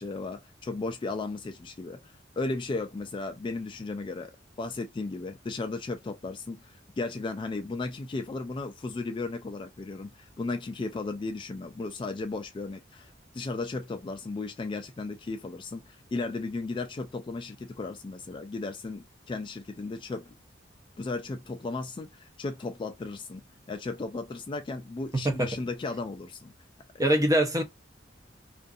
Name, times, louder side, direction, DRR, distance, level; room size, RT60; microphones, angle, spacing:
voice 1, 0.0-4.3 4.6-20.3 21.0-23.4 23.7-26.5, left 3 dB, 25° left, 0.3 m, -35 dB
voice 2, 25.1-25.5 27.0-27.6, right 1 dB, 20° right, 0.7 m, -23 dB
2.5 x 2.5 x 2.4 m
head